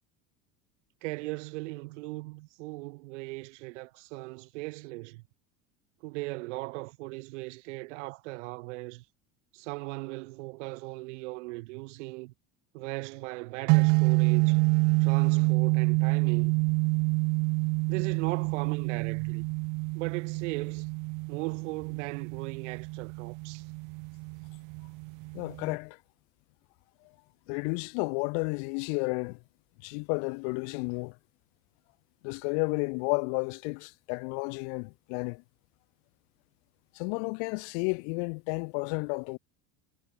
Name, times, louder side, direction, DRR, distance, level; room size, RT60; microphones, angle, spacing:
voice 1, 1.0-5.2 6.0-9.1 9.5-12.3 12.7-14.6 15.0-16.6 17.9-19.5 19.9-20.9 21.3-23.6, right 24 dB, 80° right, 3.5 m, -38 dB
sound 1, 13.7-25.8, right 30 dB, 55° right, 0.5 m, -27 dB
voice 2, 25.3-26.0 27.5-29.4 29.8-31.1 32.2-35.4 36.9-39.4, left 40 dB or more, 65° left, 0.6 m, -32 dB
supercardioid pair, 125°, 35 cm